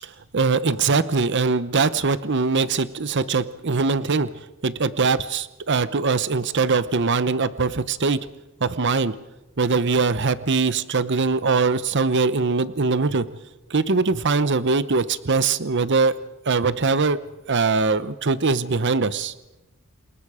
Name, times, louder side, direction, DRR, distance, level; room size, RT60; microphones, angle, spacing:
voice 1, 0.3-4.3 4.6-8.2 8.6-9.2 9.6-13.3 13.7-16.1 16.5-17.2 17.5-19.3, right 4 dB, 55° right, 15 dB, 0.8 m, -22 dB
28.0 x 21.0 x 5.0 m, 1.0 s
head